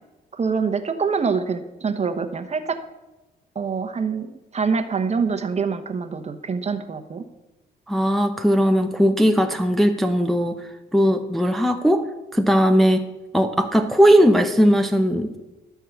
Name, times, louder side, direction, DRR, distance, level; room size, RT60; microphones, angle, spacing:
voice 1, 0.3-2.8 3.5-7.2, right 5 dB, 35° right, 8 dB, 0.9 m, -25 dB
voice 2, 7.9-10.6 10.9-12.0 12.3-13.0 13.3-15.3, equal, ahead, 5 dB, 0.6 m, -18 dB
12.5 x 4.6 x 6.9 m, 1.1 s
cardioid pair, 90°, 20 cm